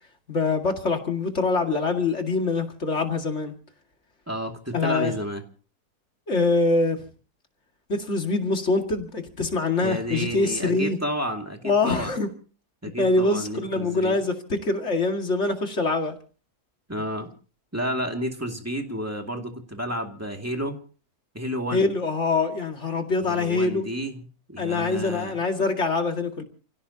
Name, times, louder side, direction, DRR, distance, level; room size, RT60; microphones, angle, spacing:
voice 1, 0.3-3.5 4.7-5.1 6.3-7.0 7.9-11.0 11.6-12.3 13.0-16.2 21.7-23.8 24.6-26.4, left 3 dB, 45° left, 4 dB, 2.5 m, -24 dB
voice 2, 4.3-5.4 9.8-12.1 12.8-14.2 16.9-17.3 17.7-20.8 21.3-21.9 23.2-25.4, equal, 10° right, 3 dB, 2.2 m, -31 dB
29.5 x 16.5 x 2.8 m, 0.38 s
omnidirectional pair, 1.7 m